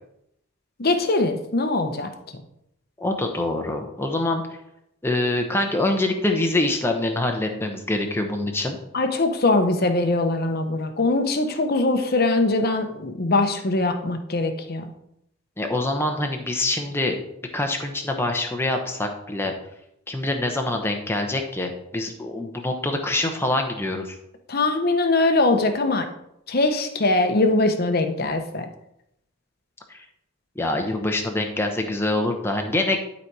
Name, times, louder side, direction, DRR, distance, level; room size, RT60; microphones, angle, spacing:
voice 1, 0.8-2.1 8.9-14.9 24.5-26.1 26.5-28.7, left 2 dB, 45° left, 6 dB, 0.9 m, -22 dB
voice 2, 3.0-4.4 5.0-8.8 15.6-17.2 17.5-19.5 20.1-24.1 29.9-30.0 30.6-33.0, left 2 dB, 10° left, 3 dB, 0.8 m, -25 dB
12.0 x 4.2 x 4.7 m, 0.79 s
head